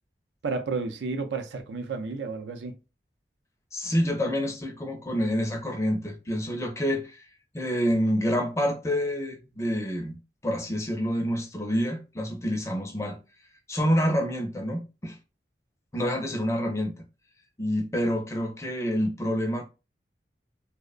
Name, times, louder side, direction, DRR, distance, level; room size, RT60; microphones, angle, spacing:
voice 1, 0.4-2.8, right 4 dB, 85° right, 0.5 m, -31 dB
voice 2, 3.7-7.3 7.5-10.2 10.4-13.2 13.7-15.2 15.9-17.0 17.6-19.6, equal, 15° left, 0.4 m, -27 dB
2.7 x 2.1 x 2.4 m
head